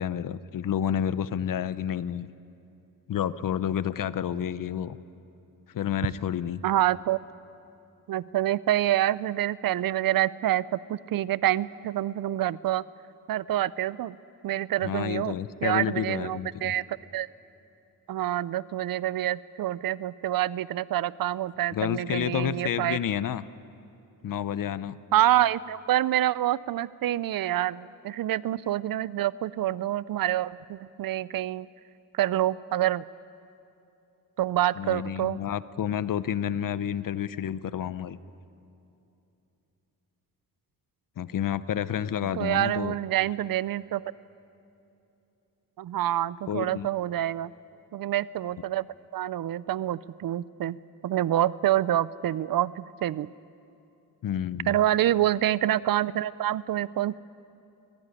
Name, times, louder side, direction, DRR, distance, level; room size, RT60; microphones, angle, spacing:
voice 1, 0.0-2.3 3.1-5.0 5.7-6.6 14.8-16.7 21.7-23.4 24.2-25.0 34.8-38.2 41.2-43.0 46.5-46.9 54.2-54.7, left 9 dB, 65° left, 15 dB, 0.7 m, -30 dB
voice 2, 6.6-7.2 8.1-12.8 13.3-14.2 14.4-16.8 17.1-17.3 18.1-23.0 25.1-31.7 32.1-33.0 34.4-35.4 42.3-44.0 45.8-47.5 47.9-48.8 49.1-50.8 51.0-53.3 54.7-57.2, right 13 dB, 70° right, 19 dB, 0.5 m, -27 dB
22.0 x 16.0 x 9.9 m, 2.9 s
cardioid pair, 105°, 35 cm